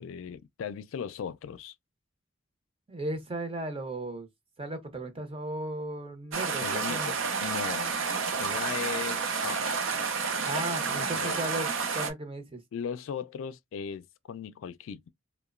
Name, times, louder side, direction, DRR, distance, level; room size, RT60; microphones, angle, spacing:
voice 1, 0.0-1.7 6.6-8.0 8.4-9.7 10.9-11.5 12.7-15.1, left 7 dB, 75° left, 0.3 m, -37 dB
voice 2, 2.9-4.3 4.6-7.1 10.3-12.6, right 2 dB, 30° right, 0.6 m, -36 dB
sound 1, 6.3-12.1, right 5 dB, 70° right, 0.5 m, -30 dB
2.9 x 2.1 x 2.3 m
head